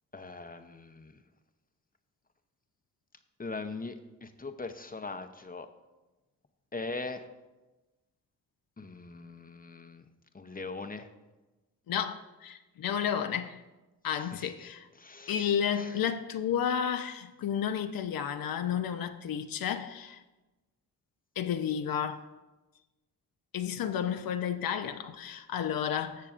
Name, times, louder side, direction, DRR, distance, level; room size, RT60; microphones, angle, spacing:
voice 1, 0.1-1.1 3.4-3.9 4.2-5.7 6.7-7.2 8.8-10.0 10.3-11.1 14.1-14.7 15.0-16.0, left 3 dB, 25° left, 0.8 m, -41 dB
voice 2, 11.9-13.6 14.0-14.9 15.3-20.2 21.4-22.2 23.5-26.3, left 8 dB, 65° left, 0.7 m, -32 dB
18.5 x 6.5 x 2.5 m
supercardioid pair, 50°, 38 cm